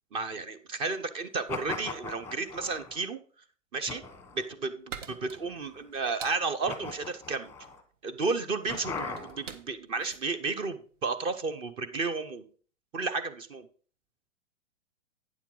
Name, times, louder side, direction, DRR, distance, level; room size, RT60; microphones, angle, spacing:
voice 1, 0.1-3.2 3.7-4.0 4.3-7.5 8.0-12.4 12.9-13.7, right 4 dB, 15° right, 12 dB, 0.5 m, -32 dB
sound 1, 1.5-3.0 3.9-4.5 5.1-5.8 6.7-7.8 8.7-9.5, left 4 dB, 5° left, 1.0 m, -39 dB
sound 2, 4.0-11.4, right 7 dB, 75° right, 1.2 m, -48 dB
9.3 x 7.2 x 3.8 m, 0.42 s
hypercardioid pair, 135°, 38 cm